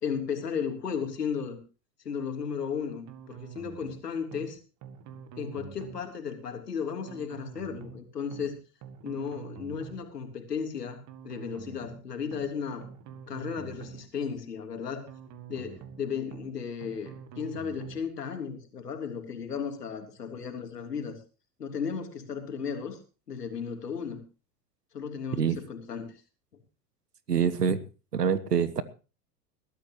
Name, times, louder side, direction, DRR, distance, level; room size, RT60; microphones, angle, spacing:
voice 1, 0.0-1.6 2.0-4.6 5.3-8.5 9.0-12.9 13.3-15.0 15.5-21.2 21.6-23.0 23.3-24.2 24.9-26.2, left 6 dB, 85° left, 5 dB, 3.3 m, -35 dB
sound 1, 3.1-4.0 4.3-4.5 4.8-6.0 7.1-8.0 8.3-8.5 8.8-10.0 11.1-12.0 12.3-12.5 12.8-14.0 15.1-16.0 16.3-16.5 16.8-18.0, right 8 dB, 40° right, 2.1 m, -45 dB
voice 2, 27.3-27.8 28.1-28.8, right 7 dB, 90° right, 16 dB, 1.5 m, -25 dB
21.0 x 13.0 x 3.1 m, 0.34 s
hypercardioid pair, 90°, 46 cm